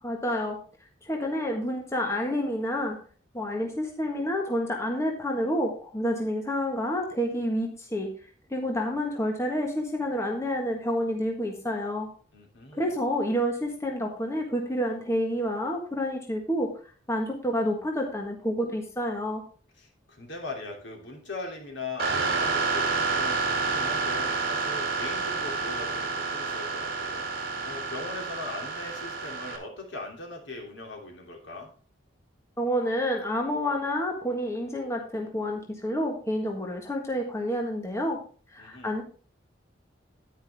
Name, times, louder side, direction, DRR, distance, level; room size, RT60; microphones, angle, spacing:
voice 1, 0.0-0.6 1.0-3.0 3.3-8.1 8.5-12.1 12.7-16.7 17.1-19.4 32.6-38.2 38.5-39.0, equal, 15° left, 1 dB, 1.5 m, -29 dB
voice 2, 12.3-12.9 19.8-31.7 38.6-38.9, left 2 dB, 65° left, 1 dB, 3.0 m, -40 dB
sound 1, 22.0-29.6, right 4 dB, 50° right, 2.3 m, -29 dB
10.0 x 9.9 x 3.5 m, 0.39 s
head